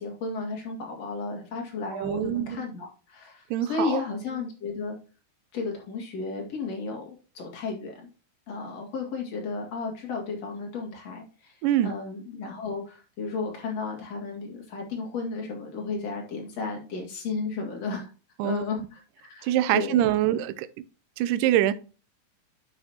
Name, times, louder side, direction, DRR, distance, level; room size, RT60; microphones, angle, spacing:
voice 1, 0.0-5.0 5.5-7.9 8.5-11.5 11.8-18.1 18.4-20.0, left 4 dB, 50° left, 3.1 m, -33 dB
voice 2, 1.9-2.7 3.5-4.0 11.6-11.9 18.4-18.6 19.4-20.7 21.2-21.7, right 12 dB, 80° right, 2.1 m, -24 dB
9.9 x 6.5 x 2.8 m
omnidirectional pair, 4.0 m